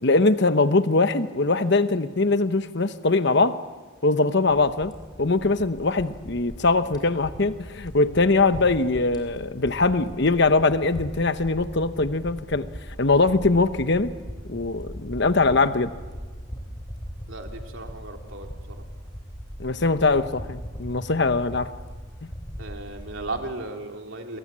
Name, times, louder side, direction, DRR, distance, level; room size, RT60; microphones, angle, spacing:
voice 1, 0.0-3.6 4.0-4.9 5.2-12.7 13.0-14.1 14.5-15.9 19.6-21.7, left 3 dB, 55° left, 11 dB, 1.0 m, -22 dB
sound 1, 4.5-23.5, equal, 20° left, 3.4 m, -40 dB
voice 2, 17.3-18.9 22.6-24.4, right 2 dB, 65° right, 3 dB, 3.1 m, -36 dB
28.0 x 23.0 x 7.5 m, 1.4 s
head